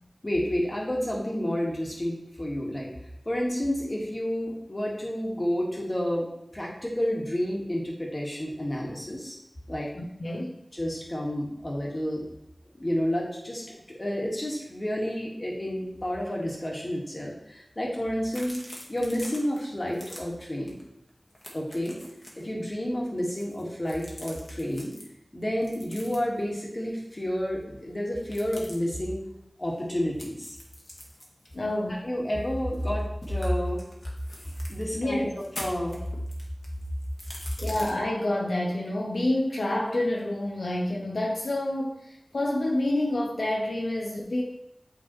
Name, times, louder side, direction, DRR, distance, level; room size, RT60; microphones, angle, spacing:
voice 1, 0.2-2.9 3.2-6.3 6.5-9.4 9.7-9.9 10.7-12.2 12.7-18.6 18.9-20.8 21.5-22.0 22.3-24.9 25.3-29.2 29.6-30.6 31.9-33.8 34.7-35.3 35.6-36.0, equal, 40° left, -3 dB, 1.7 m, -30 dB
voice 2, 9.9-10.6 13.7-13.8 31.5-32.0 34.9-35.3 37.6-44.4, left 1 dB, 90° left, -2 dB, 0.8 m, -28 dB
sound 1, 18.2-19.6 19.9-20.2 20.7-20.8 21.1-22.4 23.2-25.0 25.6-26.4 28.2-28.7 30.2-32.9 33.2-34.9 35.3-37.9, left 1 dB, 60° left, 1.4 m, -44 dB
8.9 x 3.8 x 3.1 m, 0.80 s
wide cardioid pair, 55°, 0 cm